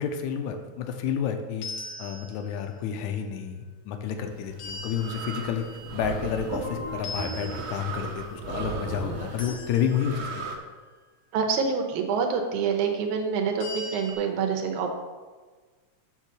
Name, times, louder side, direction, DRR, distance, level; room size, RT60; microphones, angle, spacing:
voice 1, 0.0-1.7 2.0-5.6 5.9-10.4, left 8 dB, 85° left, 5 dB, 2.0 m, -30 dB
sound 1, 1.6-2.8 4.6-6.6 7.0-8.3 9.4-10.4 13.6-14.1, left 1 dB, 60° left, 1.4 m, -41 dB
sound 2, 4.1-9.5, right 1 dB, 50° right, 1.1 m, -40 dB
sound 3, 4.5-10.6, right 4 dB, 65° right, 1.5 m, -37 dB
voice 2, 11.3-14.9, right 5 dB, 85° right, 3 dB, 2.3 m, -26 dB
7.4 x 3.8 x 6.5 m, 1.4 s
omnidirectional pair, 3.4 m